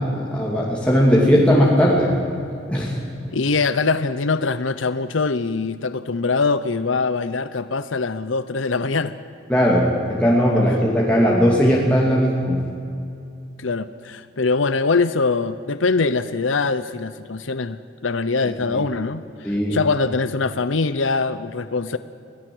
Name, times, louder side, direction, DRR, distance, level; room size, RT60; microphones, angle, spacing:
voice 1, 0.0-2.1 2.7-2.9 9.5-12.6 18.7-18.8 19.4-19.8, equal, 5° left, -5 dB, 2.7 m, -18 dB
voice 2, 3.3-9.1 13.6-22.0, left 4 dB, 75° left, 13 dB, 0.8 m, -23 dB
25.0 x 19.0 x 7.9 m, 2.6 s
head